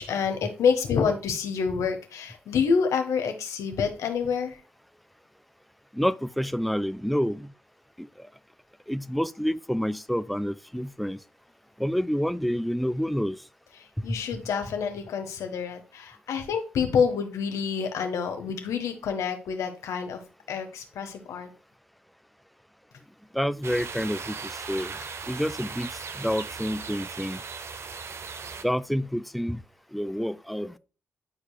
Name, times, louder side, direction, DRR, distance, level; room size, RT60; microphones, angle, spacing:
voice 1, 0.0-4.6 13.8-20.2 20.5-21.5, left 6 dB, 75° left, 1.4 m, -27 dB
voice 2, 5.9-7.5 8.0-8.3 8.9-11.2 11.8-13.4 14.0-14.2 23.3-24.9 25.3-27.4 28.6-29.6 29.9-30.8, equal, ahead, 0.5 m, -28 dB
sound 1, 23.6-28.6, right 5 dB, 55° right, 0.9 m, -38 dB
11.5 x 4.8 x 2.3 m
hypercardioid pair, 40°, 5 cm